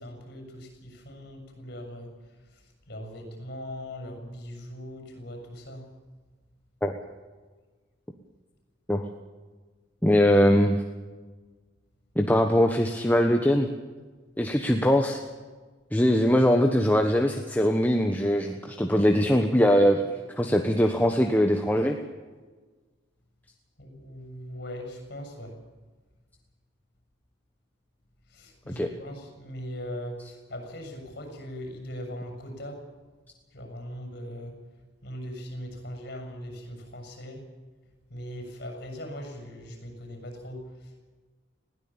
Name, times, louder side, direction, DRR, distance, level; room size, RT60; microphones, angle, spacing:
voice 1, 0.0-5.9 23.8-25.6 28.3-32.8 33.5-34.6 35.0-37.4 38.1-41.0, equal, 50° left, 5 dB, 6.9 m, -40 dB
voice 2, 10.0-10.8 12.2-13.7 14.4-15.2 15.9-20.0 20.3-22.0 28.8-28.9, equal, 10° left, 4 dB, 1.2 m, -21 dB
20.5 x 16.5 x 8.8 m, 1.4 s
head